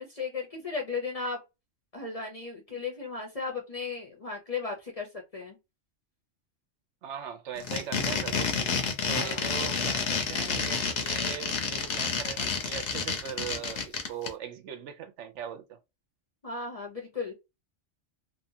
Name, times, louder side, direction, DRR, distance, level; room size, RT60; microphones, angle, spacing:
voice 1, 0.0-1.4 1.9-5.6 9.1-9.5 16.4-17.3, left 4 dB, 35° left, 0.7 m, -35 dB
voice 2, 7.0-8.5 9.1-15.8, right 8 dB, 70° right, 0.9 m, -40 dB
sound 1, 7.6-14.3, left 5 dB, 65° left, 1.0 m, -29 dB
2.8 x 2.2 x 2.7 m
omnidirectional pair, 1.3 m